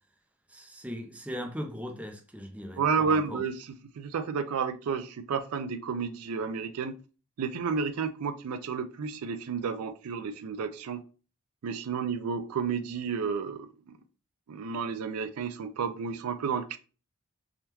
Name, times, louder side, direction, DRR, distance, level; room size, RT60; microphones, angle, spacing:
voice 1, 0.5-3.4, equal, 5° right, 0.4 m, -39 dB
voice 2, 2.8-3.7 4.0-6.9 7.4-11.0 11.6-13.7 14.5-16.8, right 5 dB, 80° right, 0.4 m, -31 dB
3.5 x 2.2 x 2.8 m
head